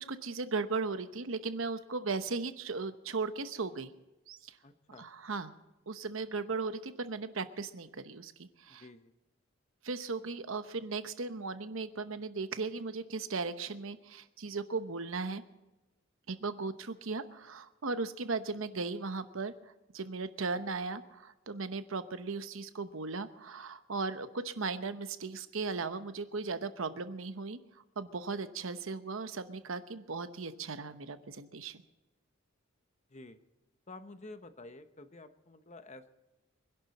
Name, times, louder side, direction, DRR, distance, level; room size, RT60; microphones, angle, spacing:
voice 1, 0.0-3.9 4.3-4.6 5.0-5.5 5.9-8.8 9.8-15.4 16.3-27.6 28.0-31.8, right 4 dB, 70° right, 11 dB, 0.9 m, -37 dB
voice 2, 4.6-5.1 8.7-9.1 33.1-33.4 33.9-36.1, left 2 dB, 35° left, 10 dB, 0.9 m, -50 dB
24.5 x 11.5 x 4.2 m, 1.0 s
head